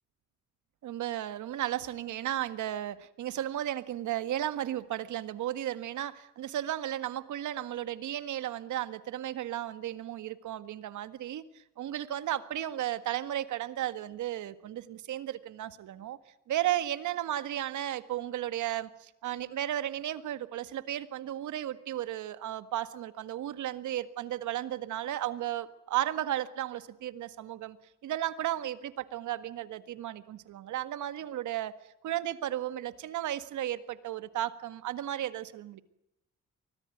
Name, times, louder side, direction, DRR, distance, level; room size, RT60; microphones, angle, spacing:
voice 1, 0.8-16.2 16.5-27.8 28.0-31.7 32.0-35.8, right 12 dB, 75° right, 12 dB, 1.7 m, -34 dB
24.5 x 18.5 x 9.3 m, 0.83 s
cardioid pair, 90°, 30 cm